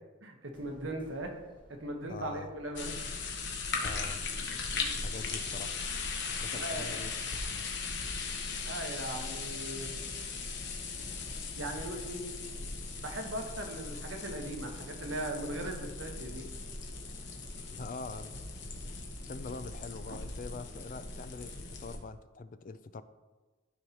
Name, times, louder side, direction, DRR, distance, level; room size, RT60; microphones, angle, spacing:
voice 1, 0.2-1.3 1.8-2.9 6.5-7.0 8.6-10.0 11.6-12.4 13.0-16.5 20.0-20.2, right 1 dB, 80° right, 3 dB, 1.1 m, -39 dB
sound 1, 0.5-17.6, equal, 25° left, 1.1 m, -59 dB
voice 2, 2.1-2.5 3.8-4.2 5.0-5.8 6.4-7.7 17.7-18.4 19.2-23.0, left 4 dB, 45° left, 12 dB, 0.4 m, -44 dB
sound 2, 2.8-22.0, left 4 dB, 60° left, 1.0 m, -38 dB
12.5 x 4.7 x 2.9 m, 1.2 s
head